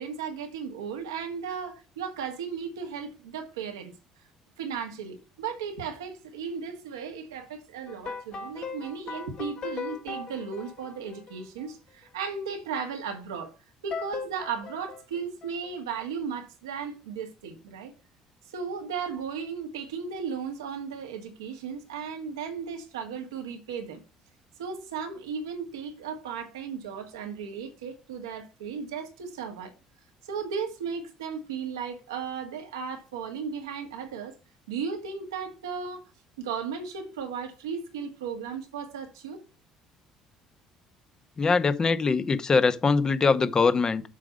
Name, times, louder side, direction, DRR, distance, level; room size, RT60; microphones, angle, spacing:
voice 1, 0.0-3.9 4.6-13.5 13.8-17.9 18.5-24.0 24.6-29.7 30.2-34.4 34.7-36.0 36.4-39.4, right 6 dB, 85° right, 1.6 m, -35 dB
sound 1, 7.9-11.7 13.9-15.7, left 5 dB, 55° left, 2.1 m, -38 dB
voice 2, 41.4-44.0, left 4 dB, 35° left, 1.0 m, -22 dB
7.4 x 4.9 x 5.3 m
hypercardioid pair, 55°, 2 cm